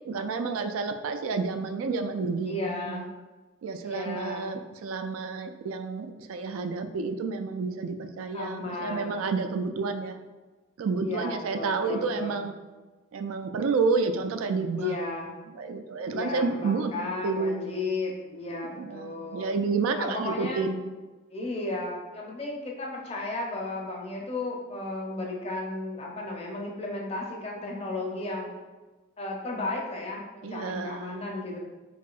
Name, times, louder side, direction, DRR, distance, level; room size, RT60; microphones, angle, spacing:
voice 1, 0.0-3.1 3.6-10.2 10.8-12.6 13.1-15.0 15.5-16.9 17.2-17.7 18.8-20.9 30.4-31.3, right 4 dB, 85° right, 7 dB, 0.3 m, -30 dB
voice 2, 2.5-3.1 3.8-4.5 8.3-9.4 11.0-12.5 14.8-15.3 16.1-19.6 20.0-20.6 21.3-28.5 29.2-31.6, left 2 dB, 30° left, -1 dB, 0.5 m, -34 dB
4.8 x 2.7 x 2.4 m, 1.2 s
head